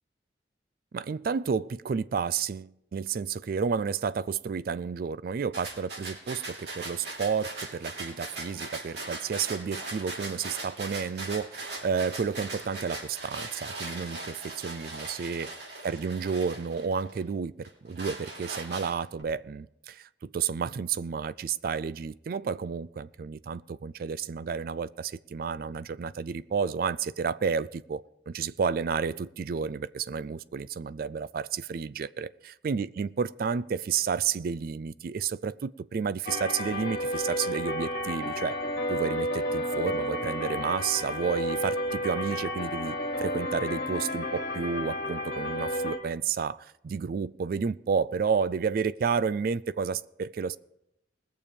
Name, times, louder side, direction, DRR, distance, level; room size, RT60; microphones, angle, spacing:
voice 1, 0.9-15.5 15.8-38.6 38.9-50.6, right 6 dB, 55° right, 0.3 m, -31 dB
sound 1, 5.5-17.2 17.6-19.2, right 2 dB, 70° right, 3.3 m, -39 dB
sound 2, 36.3-46.0, left 1 dB, 55° left, 1.6 m, -31 dB
20.5 x 7.0 x 5.1 m
head